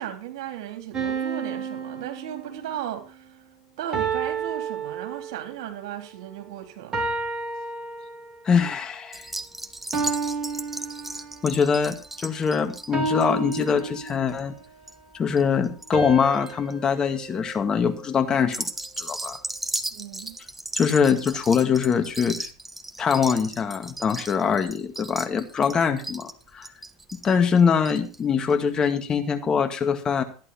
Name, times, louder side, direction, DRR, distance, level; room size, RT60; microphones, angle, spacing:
voice 1, 0.0-3.4 3.8-7.0 19.9-20.4, right 10 dB, 60° right, 3 dB, 3.9 m, -36 dB
sound 1, 0.9-2.9 3.9-5.6 6.9-8.5 9.9-11.6 12.9-14.5 15.9-18.3, right 4 dB, 25° right, 3.9 m, -31 dB
voice 2, 8.4-9.3 11.4-14.5 15.1-18.7 19.0-19.4 20.7-22.5 23.0-26.7 27.2-30.2, left 6 dB, 25° left, 7 dB, 2.0 m, -23 dB
sound 2, 9.1-15.9 16.2-16.7 17.2-17.6 18.4-28.2 28.5-28.6 28.8-28.9, right 1 dB, 10° right, 1.2 m, -36 dB
14.0 x 11.0 x 4.4 m, 0.35 s
figure-of-eight pair, 85°, 3 cm